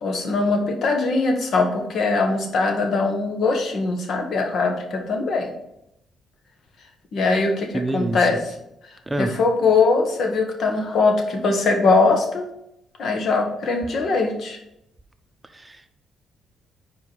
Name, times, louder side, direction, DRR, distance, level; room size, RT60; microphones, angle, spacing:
voice 1, 0.0-5.5 7.1-8.5 9.2-12.5 13.0-14.6, left 3 dB, 65° left, 4 dB, 1.3 m, -21 dB
voice 2, 7.7-8.2 9.1-9.3 15.5-15.9, right 1 dB, 15° right, 8 dB, 0.7 m, -26 dB
4.8 x 4.6 x 5.4 m, 0.82 s
cardioid pair, 80°, 0 cm